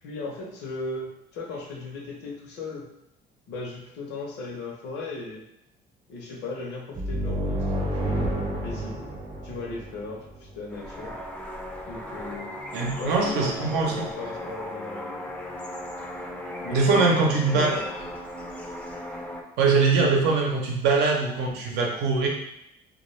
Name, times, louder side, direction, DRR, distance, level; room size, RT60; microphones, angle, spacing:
voice 1, 0.0-2.9 3.5-5.4 6.1-9.1 9.4-11.2 11.9-12.5 13.0-15.3 16.6-17.9, left 2 dB, 85° left, -2 dB, 0.7 m, -36 dB
sound 1, 6.9-10.5, equal, 35° right, 0.6 m, -29 dB
sound 2, 10.7-19.4, left 1 dB, 5° left, 0.3 m, -36 dB
voice 2, 12.7-14.0 16.7-17.8 19.6-22.3, right 4 dB, 90° right, -1 dB, 0.6 m, -22 dB
2.2 x 2.2 x 3.1 m, 0.83 s
cardioid pair, 110°, 17 cm